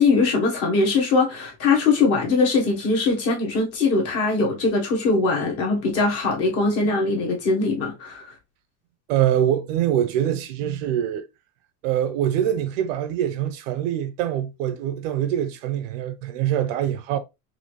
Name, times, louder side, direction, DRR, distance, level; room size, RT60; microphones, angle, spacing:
voice 1, 0.0-8.3, left 3 dB, 30° left, 1.3 m, -21 dB
voice 2, 9.1-11.2 11.8-17.2, right 11 dB, 55° right, 0.6 m, -24 dB
5.6 x 2.7 x 3.1 m
cardioid pair, 180°, 47 cm